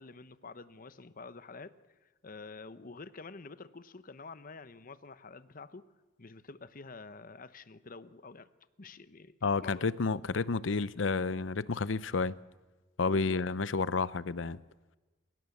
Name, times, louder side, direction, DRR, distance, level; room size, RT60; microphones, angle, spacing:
voice 1, 0.0-1.7 2.0-5.9 6.2-8.5 8.8-9.9 13.1-13.4, left 4 dB, 50° left, 0.9 m, -48 dB
voice 2, 9.4-12.3 13.0-14.6, left 4 dB, 85° left, 0.7 m, -30 dB
28.0 x 17.0 x 7.3 m
head